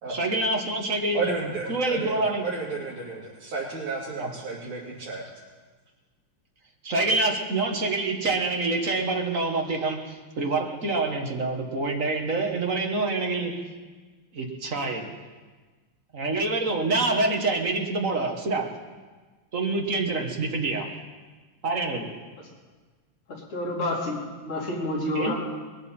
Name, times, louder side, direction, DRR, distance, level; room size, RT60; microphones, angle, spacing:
voice 1, 0.1-1.3 1.7-2.5 4.2-4.3 6.8-13.7 14.3-15.2 16.1-18.8 19.5-21.0 21.6-22.2 25.1-25.3, right 3 dB, 40° right, 2 dB, 1.7 m, -26 dB
voice 2, 1.1-5.2, right 3 dB, 80° right, -7 dB, 3.5 m, -32 dB
voice 3, 23.3-25.3, left 1 dB, 85° left, -5 dB, 4.4 m, -29 dB
21.5 x 12.5 x 4.4 m, 1.4 s
omnidirectional pair, 2.4 m